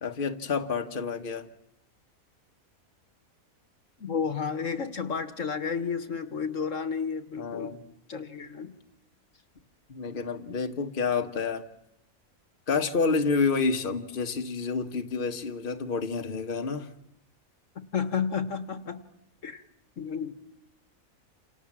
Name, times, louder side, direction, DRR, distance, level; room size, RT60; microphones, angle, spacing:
voice 1, 0.0-1.5 7.4-7.8 9.9-11.6 12.7-16.9, left 4 dB, 40° left, 5 dB, 1.5 m, -29 dB
voice 2, 4.0-7.8 8.1-8.7 17.9-19.0 19.4-19.6 20.0-20.3, left 6 dB, 65° left, 11 dB, 1.8 m, -31 dB
29.5 x 27.5 x 7.4 m, 0.80 s
omnidirectional pair, 1.5 m